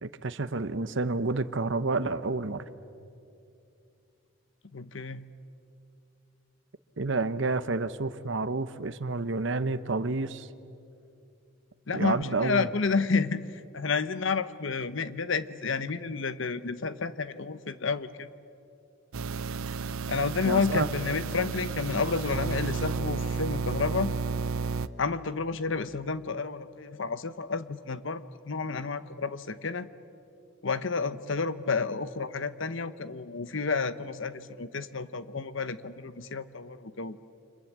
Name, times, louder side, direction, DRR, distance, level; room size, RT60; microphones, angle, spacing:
voice 1, 0.0-2.6 7.0-10.5 11.9-12.7 20.4-20.9, right 3 dB, 60° right, 13 dB, 0.9 m, -29 dB
voice 2, 4.7-5.2 11.9-18.3 20.1-24.1 25.0-29.9 30.6-37.2, left 4 dB, 65° left, 13 dB, 0.9 m, -30 dB
sound 1, 19.1-24.9, right 4 dB, 90° right, 0.7 m, -32 dB
29.5 x 26.0 x 7.5 m, 2.6 s
head